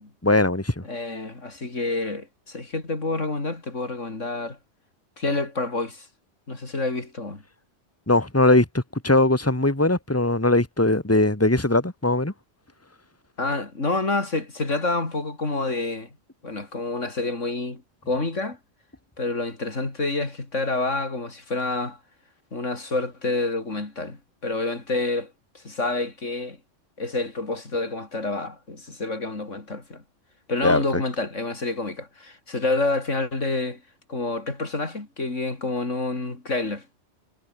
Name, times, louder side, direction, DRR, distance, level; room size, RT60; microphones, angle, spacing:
voice 1, 0.2-0.8 8.1-12.3 30.6-31.0, left 2 dB, 10° left, 2.5 m, -20 dB
voice 2, 0.8-4.6 5.2-6.1 6.5-7.4 13.4-16.1 16.4-18.6 19.2-22.0 22.5-26.6 27.0-30.0 30.5-33.8 34.1-37.0, left 2 dB, 90° left, 4.5 m, -28 dB
omnidirectional pair, 1.2 m